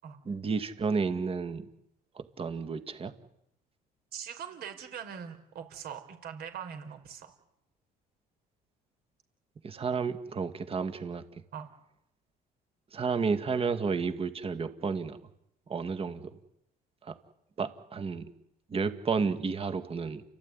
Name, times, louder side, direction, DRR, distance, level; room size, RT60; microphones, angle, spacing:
voice 1, 0.3-1.7 2.1-3.1 9.6-11.4 12.9-15.2 15.7-16.3 17.0-17.2 17.6-18.3 18.7-20.2, right 5 dB, 35° right, 9 dB, 2.1 m, -31 dB
voice 2, 4.1-7.3 11.5-11.7, right 8 dB, 70° right, 6 dB, 5.2 m, -42 dB
30.0 x 14.0 x 9.9 m, 0.81 s
cardioid pair, 110°, 17 cm